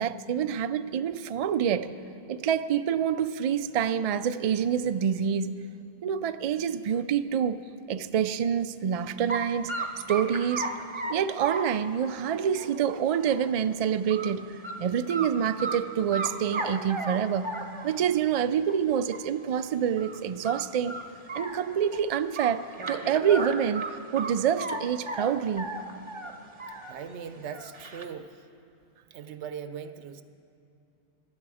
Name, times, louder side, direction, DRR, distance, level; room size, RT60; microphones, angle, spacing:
voice 1, 0.0-1.9 2.3-5.5 6.0-7.6 7.9-9.7 10.1-10.7 11.1-17.5 17.8-21.0 21.3-25.8, right 8 dB, 65° right, 11 dB, 0.3 m, -27 dB
sound 1, 9.3-9.4 9.7-13.5 13.9-14.3 14.6-14.7 15.1-15.8 16.1-18.1 18.7-18.8 19.1-19.2 19.5-19.6 20.0-20.2 20.4-22.0 22.4-24.8 25.1-26.9 27.3-28.0, right 3 dB, 30° right, 0.7 m, -35 dB
voice 2, 26.9-28.5 29.1-30.2, right 7 dB, 85° right, 10 dB, 1.0 m, -40 dB
16.0 x 11.5 x 4.9 m, 2.7 s
omnidirectional pair, 1.1 m